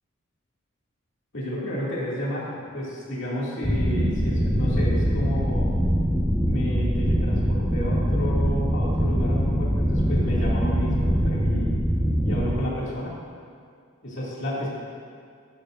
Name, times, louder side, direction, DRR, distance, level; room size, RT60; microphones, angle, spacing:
voice 1, 1.3-5.7 6.5-11.8 12.2-13.1 14.0-14.7, equal, 60° left, -6 dB, 2.3 m, -31 dB
sound 1, 3.6-12.5, equal, 5° left, 1.1 m, -23 dB
14.0 x 11.5 x 2.5 m, 2.2 s
head